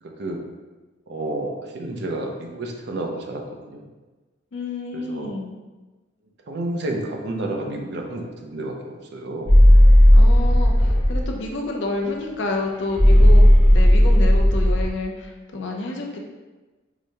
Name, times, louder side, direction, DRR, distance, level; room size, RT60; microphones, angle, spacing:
voice 1, 0.0-0.4 1.1-3.9 4.9-5.3 6.5-9.5 10.8-11.1, right 2 dB, 65° right, 2 dB, 0.5 m, -31 dB
voice 2, 4.5-5.5 10.1-16.2, left 2 dB, 70° left, 1 dB, 0.5 m, -29 dB
sound 1, 9.5-11.3 12.9-14.9, equal, 30° right, 0.9 m, -13 dB
4.7 x 2.2 x 2.7 m, 1.2 s
head